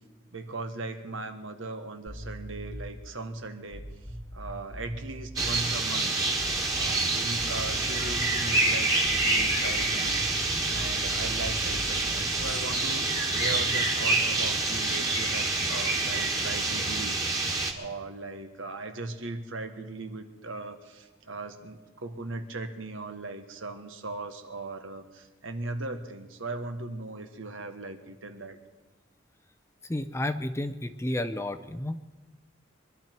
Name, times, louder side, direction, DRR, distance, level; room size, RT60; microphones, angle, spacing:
voice 1, 0.3-3.8 4.3-28.6 31.1-31.3, right 2 dB, 80° right, 7 dB, 1.4 m, -38 dB
sound 1, 2.1-3.0 3.7-5.6 6.4-7.1 7.4-8.3 9.0-12.7, equal, 50° right, 2.0 m, -40 dB
sound 2, 5.4-17.7, right 2 dB, 15° right, 1.9 m, -27 dB
voice 2, 29.8-32.2, left 1 dB, 15° left, 10 dB, 0.6 m, -32 dB
24.0 x 12.0 x 4.6 m, 1.2 s
head